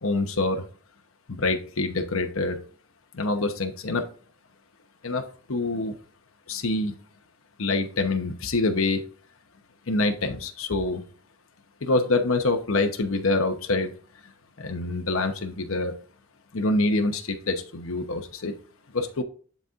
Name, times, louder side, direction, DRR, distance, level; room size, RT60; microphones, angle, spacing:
voice 1, 0.0-0.6 1.3-2.6 3.1-4.1 5.0-6.0 6.5-7.0 7.6-9.0 9.9-11.0 11.8-13.9 14.6-15.9 16.5-18.5 18.9-19.2, left 2 dB, 65° left, 5 dB, 0.9 m, -26 dB
11.0 x 4.2 x 2.5 m, 0.41 s
head